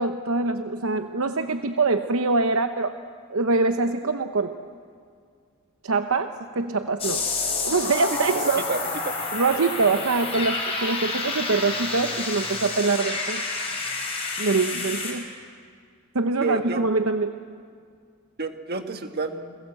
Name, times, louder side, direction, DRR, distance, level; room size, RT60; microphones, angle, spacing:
voice 1, 0.0-3.0 3.3-4.6 5.8-7.2 7.6-8.6 9.3-13.5 14.4-15.2 16.1-17.3, right 3 dB, 70° right, 7 dB, 0.9 m, -24 dB
sound 1, 7.0-15.1, left 3 dB, 25° left, 5.8 m, -29 dB
voice 2, 8.4-9.1 16.4-16.8 18.4-19.6, right 3 dB, 45° right, 6 dB, 1.6 m, -30 dB
29.5 x 20.5 x 7.7 m, 2.2 s
head